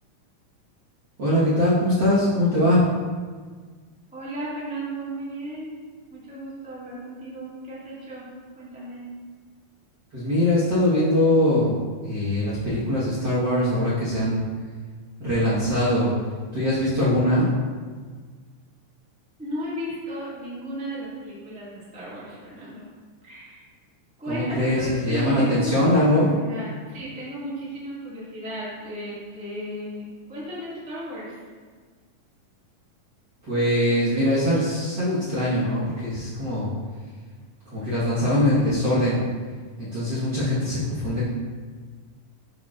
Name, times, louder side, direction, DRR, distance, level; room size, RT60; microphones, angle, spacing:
voice 1, 1.2-2.9 10.1-11.7 12.0-14.4 15.2-16.1 16.5-17.5 24.3-26.3 33.5-36.7 37.6-39.2 39.8-41.3, left 1 dB, 50° right, -11 dB, 1.3 m, -22 dB
voice 2, 4.1-5.7 6.1-8.2 8.5-9.1 19.4-22.9 23.2-23.7 24.2-31.4, equal, 5° right, -9 dB, 0.7 m, -35 dB
11.0 x 4.7 x 2.4 m, 1.5 s
omnidirectional pair, 3.7 m